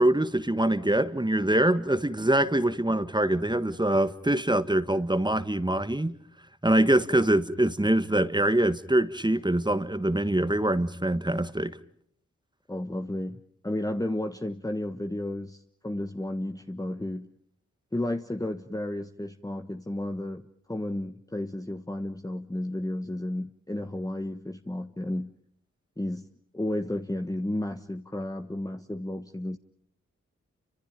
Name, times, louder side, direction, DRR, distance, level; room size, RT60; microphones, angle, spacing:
voice 1, 0.0-6.2 6.6-11.7, right 1 dB, 15° right, 1.6 m, -24 dB
voice 2, 12.7-17.3 17.9-20.4 20.7-25.3 26.0-26.3 26.5-29.6, left 1 dB, 10° left, 1.3 m, -32 dB
29.0 x 25.5 x 5.3 m
cardioid pair, 40°, 31 cm